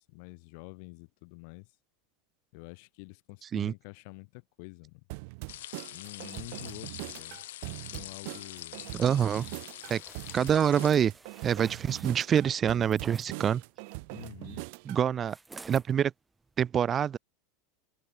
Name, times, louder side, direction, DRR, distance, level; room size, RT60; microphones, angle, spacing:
voice 1, 0.0-1.7 2.5-5.0 5.9-7.4 7.9-8.9 14.1-14.6, left 33 dB, 60° left, 2.9 m, -47 dB
sound 1, 5.1-15.0, right 29 dB, 60° right, 0.8 m, -42 dB
sound 2, 5.5-10.9, left 14 dB, 80° left, 1.6 m, -45 dB
voice 2, 8.9-9.5 9.9-10.0 10.3-11.1 11.4-13.6 14.9-15.4 15.7-16.1 16.6-17.2, right 8 dB, 30° right, 0.8 m, -26 dB
sound 3, 9.3-13.3 15.3-15.9 16.4-16.6, right 3 dB, 10° right, 2.9 m, -50 dB
supercardioid pair, 125°, 0 cm